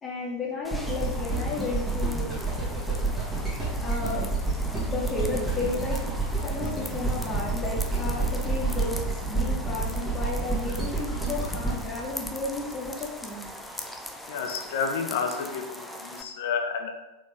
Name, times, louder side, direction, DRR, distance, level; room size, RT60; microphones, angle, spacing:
voice 1, 0.0-2.4 3.5-4.3 4.9-6.0 6.4-13.9, left 3 dB, 20° left, -4 dB, 1.2 m, -33 dB
sound 1, 0.6-16.2, left 1 dB, 5° left, 0.4 m, -41 dB
sound 2, 0.7-12.9 13.5-13.6, right 3 dB, 15° right, 1.5 m, -29 dB
voice 2, 14.3-16.9, left 6 dB, 55° left, 3 dB, 0.7 m, -30 dB
4.3 x 3.6 x 3.4 m, 1.0 s
figure-of-eight pair, 90°, 0 cm